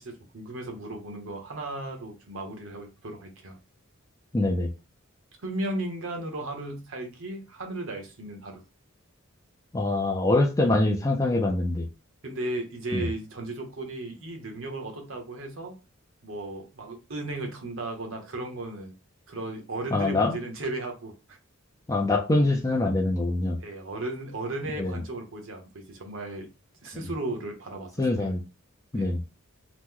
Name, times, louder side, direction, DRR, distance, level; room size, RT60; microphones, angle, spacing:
voice 1, 0.0-3.6 5.4-8.6 12.2-15.7 16.2-18.9 19.3-21.4 23.6-26.5 26.8-28.3 28.9-29.1, right 2 dB, 70° right, 3 dB, 0.9 m, -35 dB
voice 2, 4.3-4.7 9.7-11.9 12.9-13.1 19.9-20.4 21.9-23.6 24.8-24.9 27.0-27.1 28.0-28.4 28.9-29.2, left 2 dB, 15° left, 2 dB, 0.4 m, -24 dB
3.0 x 2.1 x 3.6 m, 0.29 s
head